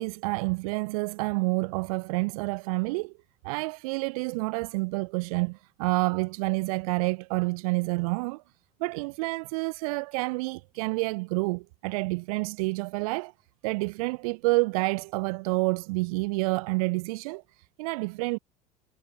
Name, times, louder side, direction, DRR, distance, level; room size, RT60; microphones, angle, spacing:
voice 1, 0.0-3.1 3.4-8.4 8.8-13.3 13.6-17.4 17.8-18.4, right 27 dB, 60° right, 0.5 m, -28 dB
figure-of-eight pair, 70°, 21 cm